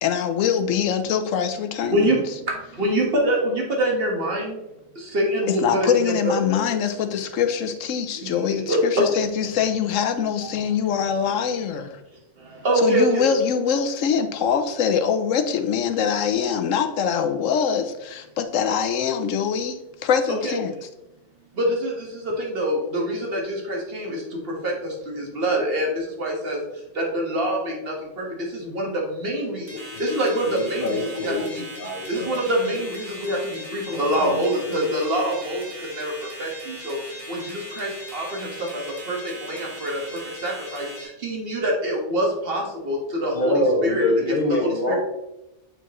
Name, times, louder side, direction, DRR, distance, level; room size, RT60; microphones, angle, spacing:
voice 1, 0.0-2.2 5.5-12.0 12.8-20.7, left 7 dB, 90° left, 8 dB, 1.1 m, -23 dB
voice 2, 1.8-4.6 4.9-6.3 8.2-8.3 8.7-9.0 10.4-10.5 12.4-13.2 20.4-20.5 21.5-31.6 32.1-44.1 44.5-44.9, right 1 dB, 50° right, -1 dB, 1.8 m, -25 dB
sound 1, 29.7-41.0, equal, 20° right, 2.1 m, -39 dB
voice 3, 30.5-32.3 33.9-34.9 43.3-44.9, left 2 dB, 45° left, -4 dB, 1.1 m, -25 dB
7.8 x 4.4 x 3.1 m, 0.92 s
omnidirectional pair, 1.3 m